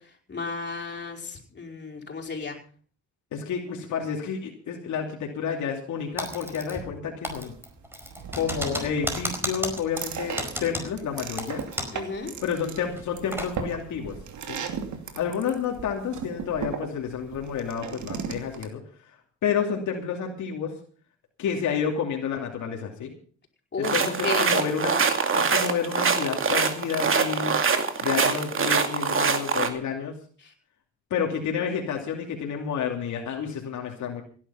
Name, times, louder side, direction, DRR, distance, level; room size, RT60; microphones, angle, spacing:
voice 1, 0.3-2.6 11.9-12.3 23.7-24.5 30.4-30.5, left 4 dB, 35° left, 2 dB, 4.8 m, -33 dB
voice 2, 3.3-7.5 8.3-11.6 12.4-14.2 14.5-14.6 15.1-18.8 19.4-20.7 21.4-23.1 23.8-25.0 25.3-27.6 28.0-30.1 31.1-34.2, left 7 dB, 70° left, 1 dB, 2.7 m, -30 dB
Typing, 6.2-7.0 7.2-12.1 12.3-12.4 12.9-13.5, equal, 10° right, 4.9 m, -33 dB
sound 1, 7.3-18.7, right 6 dB, 70° right, 2.7 m, -37 dB
sound 2, 23.8-29.7, right 5 dB, 45° right, 2.4 m, -24 dB
17.0 x 11.0 x 5.6 m, 0.43 s
cardioid pair, 90°, 30 cm